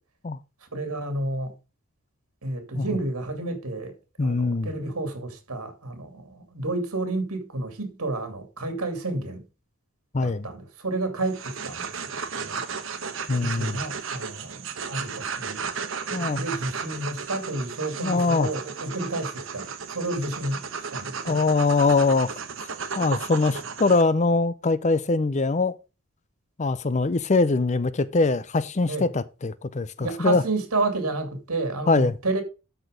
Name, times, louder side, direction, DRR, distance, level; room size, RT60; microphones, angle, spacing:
voice 1, 0.6-1.5 2.4-3.9 4.2-9.4 10.2-12.6 13.4-15.7 16.1-21.4 28.9-29.1 30.0-32.4, right 2 dB, 85° right, 2.7 m, -31 dB
voice 2, 4.2-4.7 10.1-10.4 13.3-13.8 16.1-16.4 18.0-18.5 21.2-22.3 23.0-25.7 26.6-30.4 31.9-32.1, left 3 dB, 30° left, 0.5 m, -22 dB
sound 1, 11.2-24.0, right 5 dB, 60° right, 1.2 m, -34 dB
12.5 x 4.5 x 5.1 m
head